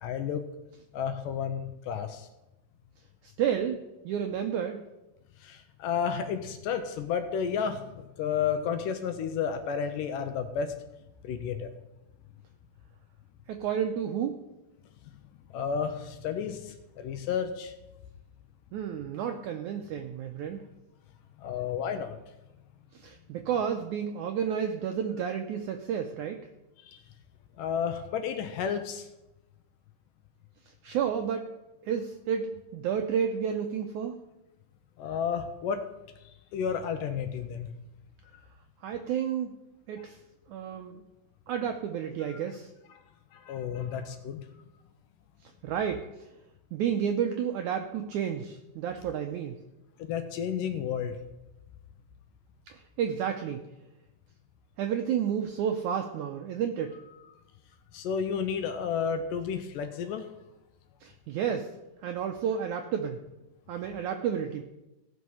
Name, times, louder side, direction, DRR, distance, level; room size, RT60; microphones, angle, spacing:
voice 1, 0.0-0.4 0.9-2.3 5.4-10.7 11.2-11.7 15.5-17.7 21.4-22.2 26.8-27.0 27.6-29.1 35.0-35.8 36.3-37.7 42.3-42.4 42.9-43.0 43.3-44.4 50.0-51.2 57.9-60.3, left 7 dB, 75° left, 8 dB, 2.1 m, -32 dB
voice 2, 3.2-4.8 13.5-14.4 18.7-20.6 22.9-26.4 30.8-31.5 31.8-34.2 38.8-39.5 39.9-40.2 40.5-41.0 41.5-42.7 45.6-46.0 46.7-49.6 52.7-53.6 54.8-57.0 61.0-61.7 62.0-63.2 63.7-64.6, right 8 dB, 80° right, 5 dB, 1.7 m, -31 dB
16.5 x 6.4 x 5.5 m, 0.98 s
omnidirectional pair, 4.3 m